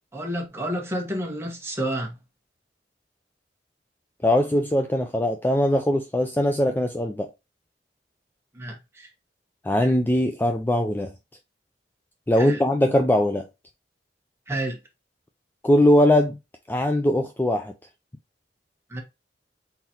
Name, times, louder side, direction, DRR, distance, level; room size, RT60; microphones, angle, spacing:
voice 1, 0.1-2.1 8.5-9.1 12.4-12.6 14.5-14.8 18.9-19.0, right 1 dB, 15° right, 1.3 m, -30 dB
voice 2, 4.2-7.3 9.6-11.1 12.3-13.5 15.6-16.4 16.7-17.7, left 1 dB, 10° left, 0.4 m, -21 dB
4.2 x 3.9 x 2.9 m
head